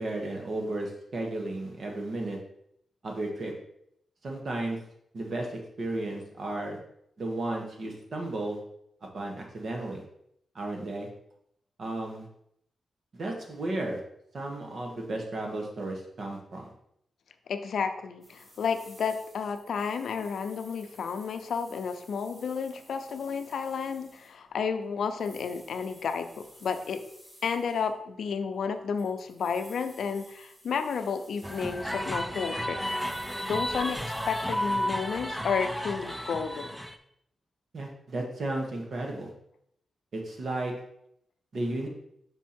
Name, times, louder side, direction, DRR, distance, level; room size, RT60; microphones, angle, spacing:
voice 1, 0.0-2.4 3.0-3.5 4.2-4.8 5.1-6.8 7.2-8.6 9.1-10.0 10.5-11.1 11.8-12.3 13.1-14.0 14.3-16.7 37.7-39.3 40.1-40.7 41.5-41.9, right 2 dB, 50° right, 1 dB, 1.4 m, -34 dB
voice 2, 17.5-27.0 27.4-32.8 33.4-36.7, left 6 dB, 75° left, 8 dB, 0.6 m, -32 dB
sound 1, 18.2-27.9 28.7-32.5 32.8-36.6, equal, 30° right, 2.7 m, -55 dB
sound 2, 31.4-37.0, equal, ahead, 0.4 m, -32 dB
5.5 x 4.6 x 4.3 m, 0.73 s
wide cardioid pair, 140°, 0 cm